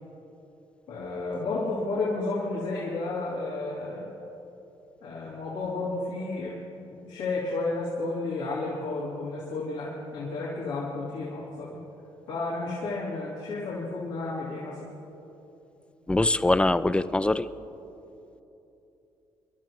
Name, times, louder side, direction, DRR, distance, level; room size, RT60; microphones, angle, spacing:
voice 1, 0.9-4.1 5.0-6.6 7.0-11.8 12.3-14.8, left 3 dB, 90° left, -7 dB, 2.5 m, -32 dB
voice 2, 16.1-17.5, left 2 dB, 10° left, 13 dB, 0.4 m, -23 dB
26.5 x 11.5 x 3.1 m, 2.9 s
supercardioid pair, 60°, 11 cm